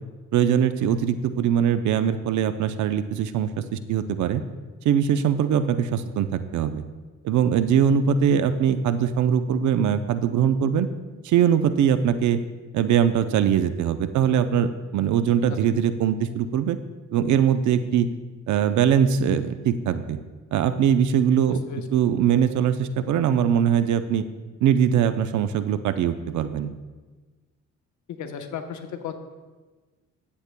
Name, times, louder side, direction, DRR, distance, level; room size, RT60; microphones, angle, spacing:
voice 1, 0.3-4.4 4.8-6.8 7.2-10.9 11.2-12.4 12.7-16.8 17.1-18.1 18.5-20.2 20.5-21.6 21.9-24.3 24.6-26.7, right 8 dB, 70° right, 11 dB, 0.6 m, -22 dB
voice 2, 21.5-21.8 28.1-29.1, left 7 dB, 70° left, 6 dB, 0.9 m, -35 dB
14.0 x 8.2 x 2.2 m, 1.3 s
cardioid pair, 90°, 30 cm